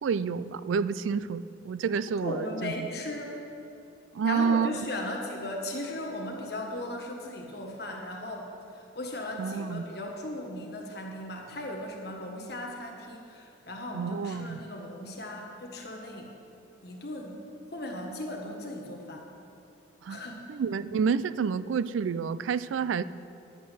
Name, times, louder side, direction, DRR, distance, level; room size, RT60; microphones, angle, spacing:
voice 1, 0.0-2.9 4.1-4.7 9.4-9.8 13.9-14.6 20.0-20.2 20.5-23.0, right 6 dB, 90° right, 16 dB, 0.4 m, -29 dB
voice 2, 2.2-3.4 4.2-16.3 16.8-17.4 17.7-19.2 20.1-20.5, left 1 dB, 55° left, 1 dB, 1.4 m, -37 dB
10.0 x 8.4 x 6.2 m, 2.8 s
head